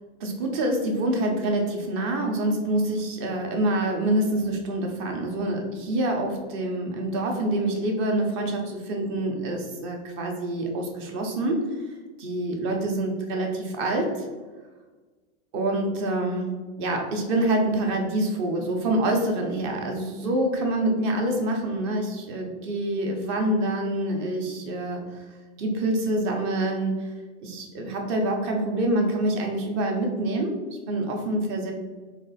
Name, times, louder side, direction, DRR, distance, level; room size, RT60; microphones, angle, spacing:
voice 1, 0.2-14.2 15.5-25.2 25.6-27.1 27.4-30.6 30.9-31.7, right 1 dB, 30° right, 2 dB, 0.5 m, -26 dB
3.5 x 2.4 x 3.9 m, 1.3 s
supercardioid pair, 165°, 34 cm